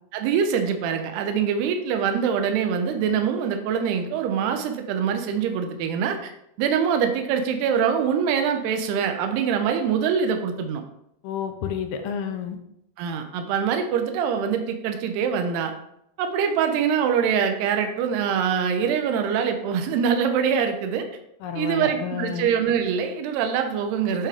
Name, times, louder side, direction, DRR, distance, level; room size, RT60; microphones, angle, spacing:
voice 1, 0.1-6.3 6.6-10.8 13.0-15.7 16.2-21.1 21.6-24.3, right 7 dB, 80° right, 6 dB, 3.0 m, -24 dB
voice 2, 11.2-12.6 21.4-22.5, left 7 dB, 80° left, 5 dB, 2.7 m, -30 dB
8.8 x 8.7 x 3.5 m, 0.78 s
omnidirectional pair, 4.7 m